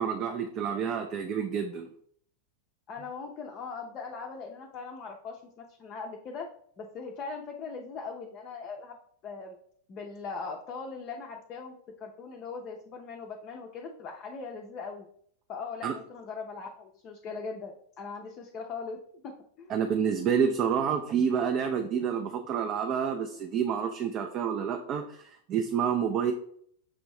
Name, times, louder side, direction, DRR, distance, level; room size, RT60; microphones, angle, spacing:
voice 1, 0.0-1.9 15.8-16.0 19.7-26.3, right 7 dB, 35° right, 5 dB, 0.4 m, -28 dB
voice 2, 2.9-6.5 6.8-9.0 9.2-9.6 9.9-11.7 12.0-15.1 15.5-19.0 19.2-19.3 19.6-19.7, left 4 dB, 35° left, 1 dB, 0.5 m, -40 dB
6.0 x 2.6 x 3.1 m, 0.63 s
figure-of-eight pair, 90°, 0 cm